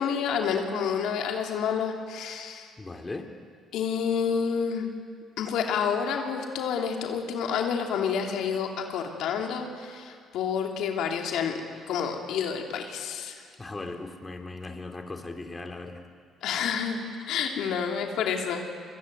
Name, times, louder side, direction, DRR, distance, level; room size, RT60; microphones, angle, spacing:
voice 1, 0.0-2.7 3.7-4.9 5.4-11.6 11.9-13.3 16.4-18.7, left 7 dB, 75° left, 2 dB, 2.9 m, -29 dB
voice 2, 2.8-3.2 13.6-16.0, left 3 dB, 20° left, 4 dB, 3.0 m, -38 dB
23.5 x 23.0 x 9.3 m, 2.1 s
supercardioid pair, 70°, 0 cm